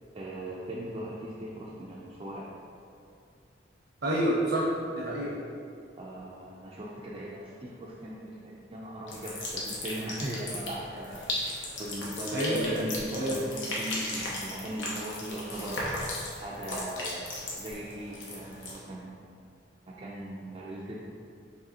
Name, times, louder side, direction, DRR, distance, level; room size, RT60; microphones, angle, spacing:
voice 1, 0.1-2.5 6.0-11.3 11.8-15.9 16.4-17.2 17.6-19.2 19.9-21.0, right 1 dB, 30° right, -6 dB, 0.4 m, -39 dB
voice 2, 4.0-5.4 12.3-12.9 13.1-13.4, right 1 dB, 75° right, -5 dB, 0.7 m, -28 dB
sound 1, 9.1-18.8, left 1 dB, 85° left, 0.9 m, -36 dB
4.8 x 3.3 x 2.8 m, 2.4 s
head